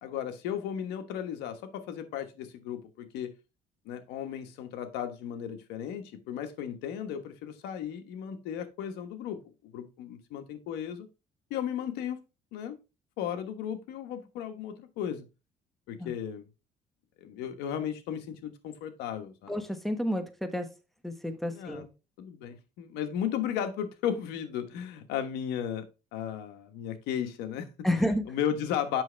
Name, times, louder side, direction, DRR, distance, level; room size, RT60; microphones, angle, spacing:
voice 1, 0.0-3.3 3.8-11.1 11.5-12.2 12.5-12.8 13.2-15.3 15.9-16.4 17.2-19.5 21.5-21.9 22.2-25.9 26.1-27.9 28.3-29.0, left 9 dB, 85° left, 1.2 m, -35 dB
voice 2, 19.5-20.7 21.0-21.9 27.8-28.3, equal, ahead, 1.3 m, -30 dB
7.6 x 6.1 x 3.3 m
cardioid pair, 95°, 17 cm